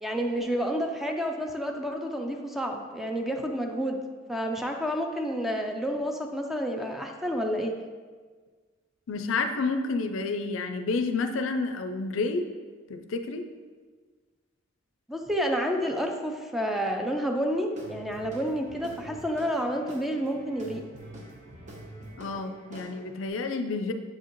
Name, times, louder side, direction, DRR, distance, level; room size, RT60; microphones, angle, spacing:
voice 1, 0.0-4.0 4.3-7.7 15.1-20.8, equal, ahead, 2 dB, 0.4 m, -29 dB
voice 2, 9.1-12.5 12.9-13.4 22.2-23.9, left 3 dB, 70° left, 7 dB, 0.5 m, -29 dB
Guitar / Drum, 17.7-23.3, right 1 dB, 40° right, 1.0 m, -45 dB
7.5 x 4.7 x 3.0 m, 1.5 s
head